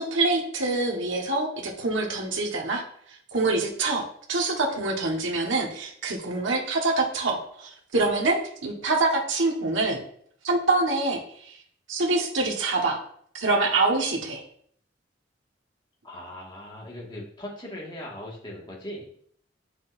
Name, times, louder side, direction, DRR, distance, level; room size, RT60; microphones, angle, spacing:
voice 1, 0.0-2.8 3.3-10.0 10.4-11.5 11.9-13.0 13.3-14.4, right 3 dB, 80° right, -1 dB, 1.5 m, -25 dB
voice 2, 16.0-19.1, left 1 dB, 25° left, -2 dB, 1.9 m, -39 dB
8.9 x 6.6 x 2.7 m, 0.63 s
head